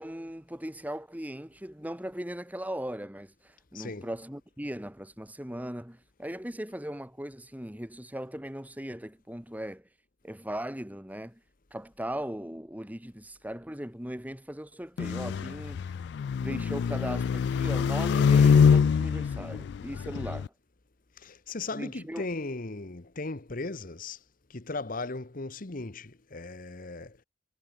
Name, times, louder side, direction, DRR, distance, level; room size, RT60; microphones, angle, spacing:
voice 1, 0.0-9.9 10.2-11.4 11.7-16.0 16.4-20.5 21.7-22.3, right 1 dB, 10° right, 2.4 m, -38 dB
voice 2, 3.7-4.1 21.2-24.2 24.5-27.2, left 3 dB, 50° left, 1.2 m, -37 dB
sound 1, 15.0-20.5, left 6 dB, 65° left, 0.3 m, -24 dB
head